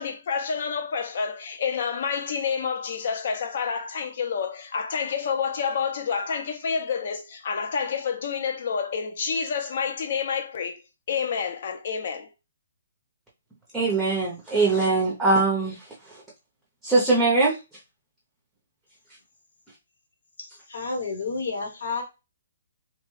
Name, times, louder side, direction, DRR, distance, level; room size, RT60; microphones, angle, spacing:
voice 1, 0.0-10.8 11.1-12.3, left 6 dB, 55° left, 0.7 m, -28 dB
voice 2, 13.7-15.7 16.8-17.6, right 3 dB, 5° right, 0.7 m, -21 dB
voice 3, 20.7-22.0, left 4 dB, 75° left, 1.0 m, -30 dB
2.9 x 2.2 x 3.1 m
hypercardioid pair, 155°, 0 cm